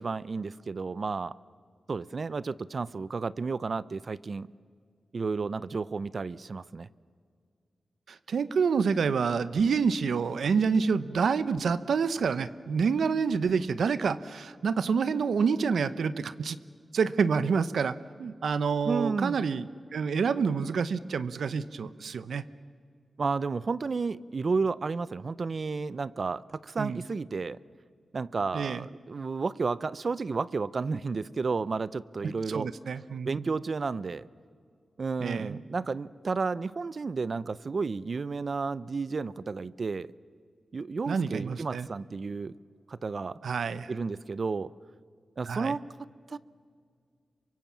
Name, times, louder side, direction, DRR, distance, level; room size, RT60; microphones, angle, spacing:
voice 1, 0.0-1.4 1.9-4.5 5.1-6.9 18.8-19.4 23.2-27.6 28.1-32.7 33.2-34.3 35.0-40.1 40.7-42.5 42.9-43.4 43.9-44.7 45.4-45.9 46.3-46.4, right 4 dB, 55° right, 18 dB, 0.6 m, -32 dB
voice 2, 8.1-16.6 16.9-22.4 26.8-27.0 28.5-28.9 32.5-33.5 35.2-35.6 41.0-41.9 43.4-43.9 45.5-45.8, right 5 dB, 90° right, 14 dB, 0.8 m, -28 dB
27.0 x 24.0 x 7.5 m, 2.1 s
wide cardioid pair, 80°, 0 cm